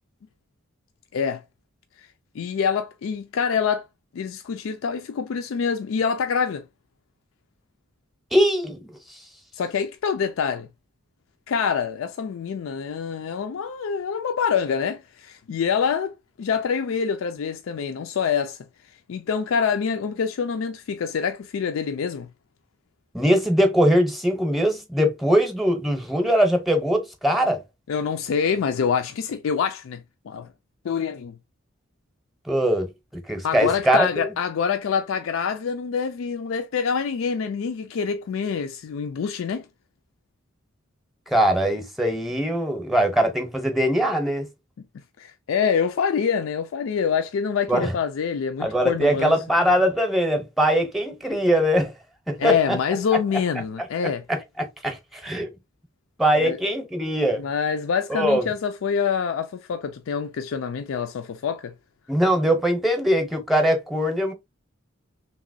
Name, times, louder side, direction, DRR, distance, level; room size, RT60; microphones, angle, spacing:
voice 1, 2.3-3.9 4.1-6.7 9.6-10.7 11.5-18.6 19.1-22.3 27.9-30.5 30.8-31.4 33.4-39.7 44.8-44.9 45.2-49.4 52.4-54.2 56.4-56.6 57.4-61.7, left 6 dB, 80° left, 0.4 m, -26 dB
voice 2, 8.3-8.8 23.1-27.6 32.5-32.9 33.3-34.3 41.3-44.5 47.7-47.9 48.6-51.9 52.3-52.8 54.3-55.5 56.2-57.4 58.1-58.5 62.1-64.3, equal, ahead, 0.7 m, -21 dB
3.0 x 2.9 x 2.5 m
head